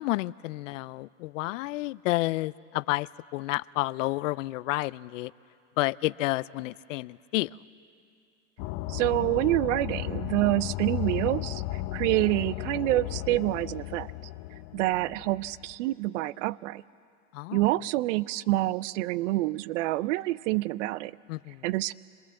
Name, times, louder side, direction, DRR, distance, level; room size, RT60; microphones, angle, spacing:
voice 1, 0.0-5.3 5.8-7.6 17.3-17.6 21.3-21.7, left 19 dB, 75° left, 20 dB, 0.5 m, -30 dB
sound 1, 8.6-15.7, left 16 dB, 50° left, 0.9 m, -35 dB
voice 2, 8.9-14.1 14.7-16.8 17.5-21.2 21.6-21.9, right 18 dB, 65° right, 20 dB, 0.6 m, -27 dB
27.0 x 20.5 x 7.7 m, 2.4 s
hypercardioid pair, 115°, 39 cm